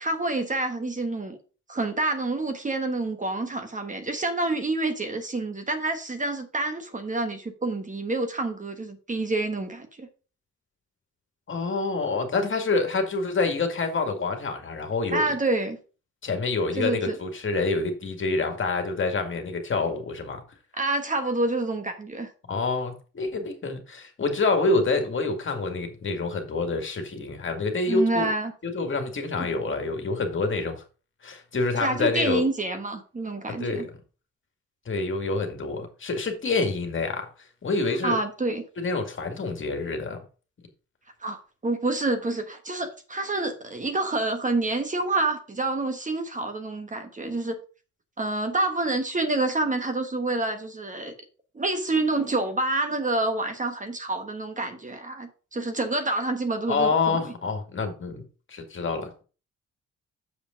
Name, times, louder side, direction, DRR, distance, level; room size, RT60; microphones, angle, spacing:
voice 1, 0.0-1.4 1.7-10.1 15.1-15.8 16.7-17.1 20.8-22.3 27.9-28.5 29.4-29.5 31.8-33.8 38.0-38.6 41.2-47.6 48.2-51.1 51.5-57.2, right 2 dB, 25° right, 1.3 m, -28 dB
voice 2, 11.5-15.3 16.2-20.4 22.5-28.3 28.6-30.8 31.2-32.4 33.5-33.9 34.9-37.3 37.6-38.2 38.8-40.2 56.7-58.2 58.5-59.2, left 3 dB, 40° left, 2.1 m, -27 dB
7.1 x 5.1 x 5.0 m
cardioid pair, 90°, 30 cm